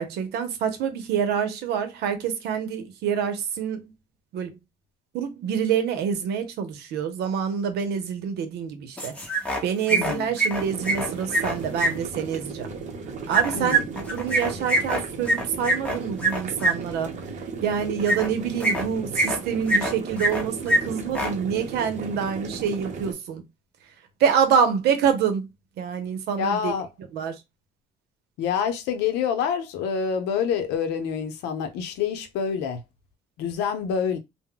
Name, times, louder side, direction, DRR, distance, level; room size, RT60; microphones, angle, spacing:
voice 1, 0.0-3.9 4.3-4.6 5.1-9.2 9.6-12.7 13.3-17.3 17.6-23.4 24.2-25.5 25.8-26.8 27.1-27.4, right 7 dB, 80° right, 0.7 m, -26 dB
sound 1, 9.0-9.6 9.9-11.9 13.3-16.7 18.0-18.3 18.6-19.4 19.7-20.4 20.7-20.8 21.1-21.3, right 2 dB, 10° left, 0.9 m, -23 dB
voice 2, 9.9-10.3 13.5-13.9 26.4-26.9 28.4-32.8 33.4-34.2, left 7 dB, 85° left, 0.6 m, -27 dB
sound 2, 10.6-23.1, right 4 dB, 45° right, 0.7 m, -36 dB
2.2 x 2.1 x 3.7 m
cardioid pair, 110°, 17 cm